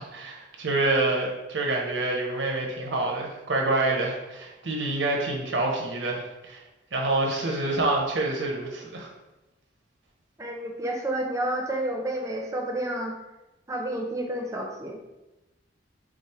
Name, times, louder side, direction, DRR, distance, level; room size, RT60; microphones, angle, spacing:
voice 1, 0.0-6.6 6.9-9.1, right 2 dB, 80° right, 0 dB, 0.9 m, -27 dB
voice 2, 10.4-13.1 13.7-15.0, right 1 dB, 15° right, 1 dB, 0.5 m, -30 dB
4.9 x 2.1 x 4.2 m, 1.0 s
head